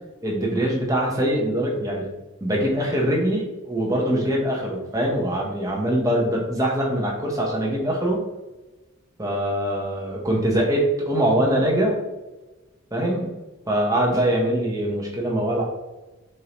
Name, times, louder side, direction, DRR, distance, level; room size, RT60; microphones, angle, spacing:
voice 1, 0.2-2.1 2.4-8.2 9.2-12.0 12.9-13.3 13.7-15.6, right 1 dB, 15° right, -2 dB, 0.9 m, -23 dB
6.4 x 2.7 x 3.0 m, 1.1 s
head